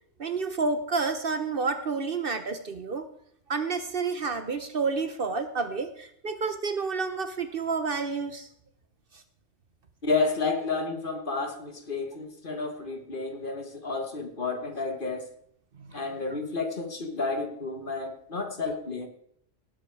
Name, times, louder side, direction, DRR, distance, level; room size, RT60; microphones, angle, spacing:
voice 1, 0.2-3.1 3.5-8.5 9.1-9.2 15.8-16.0, right 4 dB, 50° right, 9 dB, 1.0 m, -30 dB
voice 2, 10.0-15.3 15.9-19.1, left 3 dB, 45° left, 6 dB, 1.5 m, -31 dB
18.5 x 7.6 x 4.8 m, 0.71 s
omnidirectional pair, 1.3 m